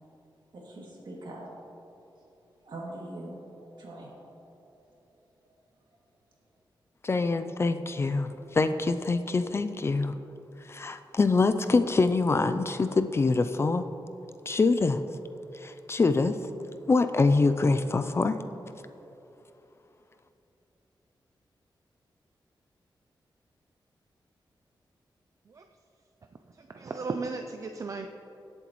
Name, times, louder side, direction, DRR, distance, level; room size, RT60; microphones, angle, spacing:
voice 1, 0.5-1.5 2.6-4.3 4.6-4.8, right 1 dB, 65° right, -4 dB, 2.5 m, -42 dB
voice 2, 7.0-10.1 10.7-13.8 14.5-15.0 15.5-16.4 16.9-18.4, left 3 dB, 30° left, 10 dB, 0.4 m, -25 dB
voice 3, 26.5-28.1, right 4 dB, 40° right, 5 dB, 0.4 m, -35 dB
18.0 x 7.8 x 3.1 m, 3.0 s
wide cardioid pair, 165°, 8 cm